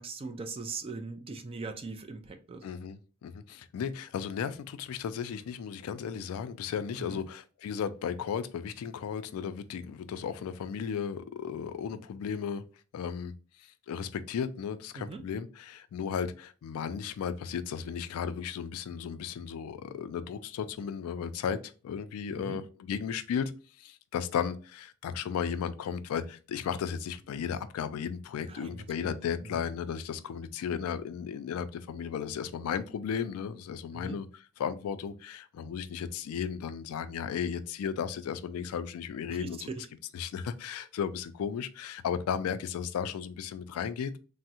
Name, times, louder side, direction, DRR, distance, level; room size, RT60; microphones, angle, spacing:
voice 1, 0.0-2.6 7.0-7.2 14.9-15.2 22.3-22.6 28.5-29.2 29.4-29.6 33.9-34.2 39.3-39.9, right 3 dB, 25° right, 0.3 m, -40 dB
voice 2, 2.6-12.6 12.9-13.3 13.9-21.6 21.8-23.5 23.8-34.3 34.6-39.7 40.1-44.1, left 7 dB, 90° left, 0.3 m, -35 dB
3.4 x 2.0 x 2.7 m
head